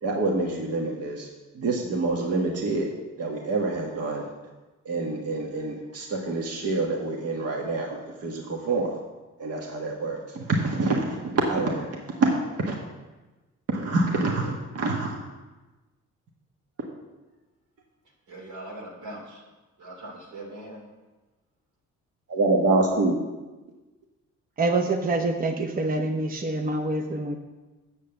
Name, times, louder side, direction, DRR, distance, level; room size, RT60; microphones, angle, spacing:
voice 1, 0.0-1.3 1.5-2.9 3.2-4.3 4.8-8.9 9.4-12.8 13.7-15.1 22.3-23.2, right 3 dB, 55° right, 0 dB, 1.5 m, -26 dB
voice 2, 18.3-19.4 19.8-20.9, right 1 dB, 85° right, -2 dB, 3.2 m, -41 dB
voice 3, 24.6-27.4, right 2 dB, 30° right, 3 dB, 0.8 m, -26 dB
7.3 x 6.5 x 7.8 m, 1.2 s
cardioid pair, 90°, 30 cm